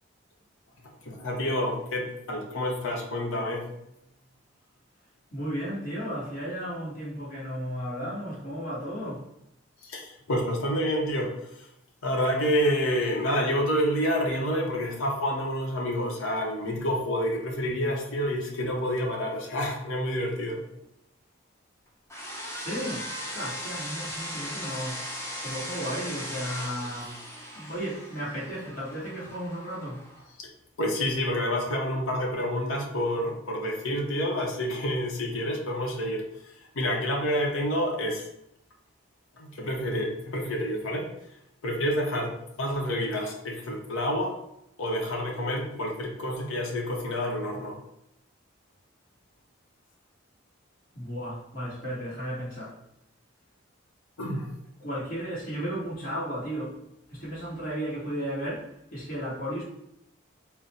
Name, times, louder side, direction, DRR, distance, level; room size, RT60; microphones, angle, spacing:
voice 1, 1.1-3.7 9.8-11.7 12.0-20.6 30.4-30.5 30.8-36.3 36.7-38.3 39.4-41.1 41.6-44.3 44.8-47.8 54.2-54.5, equal, 90° left, 0.8 m, -28 dB
voice 2, 5.3-9.3 22.5-25.1 25.4-27.2 27.5-30.1 50.9-52.8 54.8-56.8 57.1-59.6, equal, 45° left, 1.3 m, -34 dB
sound 1, 22.1-30.2, equal, 15° left, 0.6 m, -38 dB
3.8 x 2.1 x 4.1 m
head